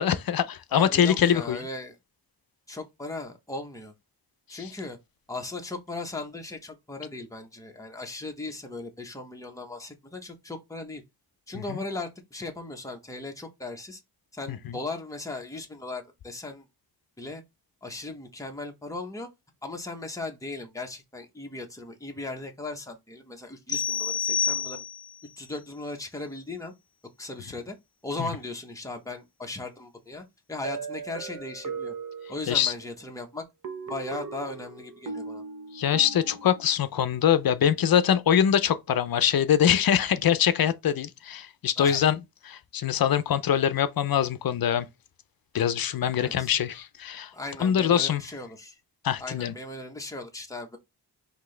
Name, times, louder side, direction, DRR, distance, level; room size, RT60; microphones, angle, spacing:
voice 1, 0.0-1.6 11.5-11.8 14.5-14.6 28.2-28.3 32.5-32.7 35.7-42.2 42.5-44.9 45.5-47.3 47.6-48.2 49.0-49.5, left 9 dB, 60° left, 0.6 m, -23 dB
voice 2, 0.7-2.0 2.7-3.9 4.5-5.0 5.3-11.0 11.5-14.0 14.3-16.7 17.2-17.4 17.8-19.3 19.6-24.8 25.4-26.7 27.2-27.8 28.0-31.9 32.3-33.5 33.9-35.4 41.8-42.1 46.2-46.5 47.3-48.8 49.2-50.8, left 2 dB, 10° left, 0.9 m, -37 dB
sound 1, 23.7-25.2, left 7 dB, 30° left, 1.1 m, -28 dB
sound 2, 30.6-32.8 33.6-36.8, right 4 dB, 50° right, 0.8 m, -38 dB
5.9 x 2.8 x 3.2 m
wide cardioid pair, 145°, 41 cm